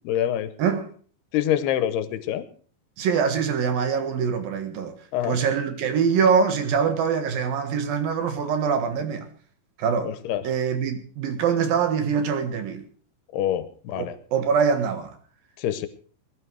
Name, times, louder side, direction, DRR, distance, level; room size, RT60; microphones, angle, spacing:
voice 1, 0.0-0.5 1.3-2.5 5.1-5.4 10.0-10.4 13.3-14.1 15.6-15.9, left 11 dB, 90° left, 3.1 m, -25 dB
voice 2, 0.6-0.9 3.0-4.9 5.2-9.3 9.8-10.1 10.4-12.8 13.9-15.1, right 6 dB, 65° right, 3.3 m, -24 dB
20.5 x 11.5 x 4.7 m
omnidirectional pair, 4.5 m